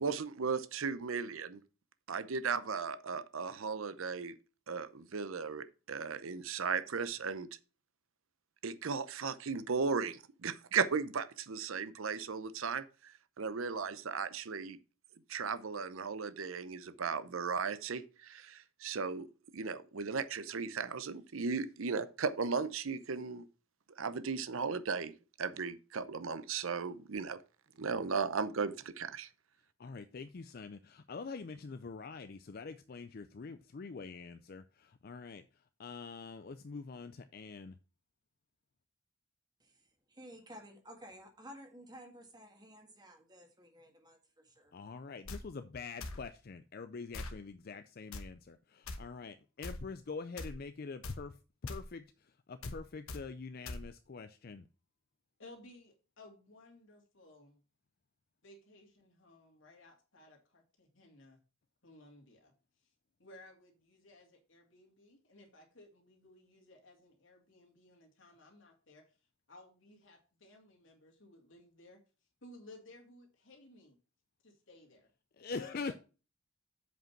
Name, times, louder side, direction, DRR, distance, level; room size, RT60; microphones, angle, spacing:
voice 1, 0.0-1.6 2.1-4.4 4.7-7.5 8.6-14.8 15.3-19.3 19.5-23.5 24.0-25.1 25.4-27.4 27.8-29.3, right 5 dB, 75° right, 0.7 m, -36 dB
voice 2, 29.8-37.8 44.7-54.7 75.4-75.9, left 4 dB, 45° left, 0.4 m, -45 dB
voice 3, 39.6-44.7, equal, 20° right, 1.6 m, -54 dB
sound 1, 45.3-45.4 46.0-46.2 47.1-47.4 48.1-48.3 48.9-49.0 49.6-49.8 50.4-50.6 51.0-51.2 51.7-51.8 52.6-52.8 53.1-53.2 53.7-53.8, left 2 dB, 85° left, 1.1 m, -42 dB
voice 4, 55.4-57.6 58.4-61.4 61.8-62.5 63.2-69.0 69.5-72.0 72.4-74.0 74.4-75.1 75.5-75.9, left 2 dB, 65° left, 2.6 m, -58 dB
7.8 x 5.1 x 5.8 m
head